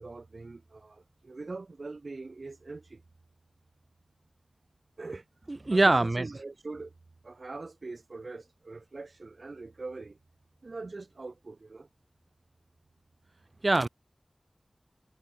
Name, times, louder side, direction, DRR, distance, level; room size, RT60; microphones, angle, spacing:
voice 1, 0.0-3.0 5.0-5.3 5.7-6.9 7.2-10.2 10.6-11.9, right 3 dB, 70° right, 2.0 m, -42 dB
voice 2, 5.5-6.3 13.6-13.9, right 2 dB, 45° right, 1.1 m, -23 dB
wide cardioid pair, 70°, 0 cm